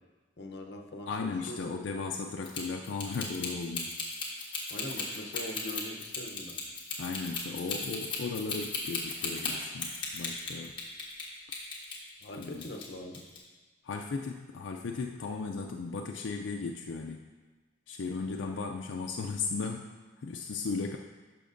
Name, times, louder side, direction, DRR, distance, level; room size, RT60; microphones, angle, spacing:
voice 1, 0.4-1.7 4.7-6.6 12.2-13.2 18.3-18.6, left 1 dB, 60° left, 3 dB, 0.8 m, -42 dB
voice 2, 1.1-3.9 7.0-10.8 12.3-12.7 13.8-17.2 17.9-19.9 20.2-21.0, left 4 dB, 85° left, 2 dB, 0.4 m, -36 dB
sound 1, 2.4-11.2 11.5-12.9 13.1-13.4, left 4 dB, 25° left, 1.2 m, -36 dB
12.0 x 5.8 x 2.6 m, 1.3 s
head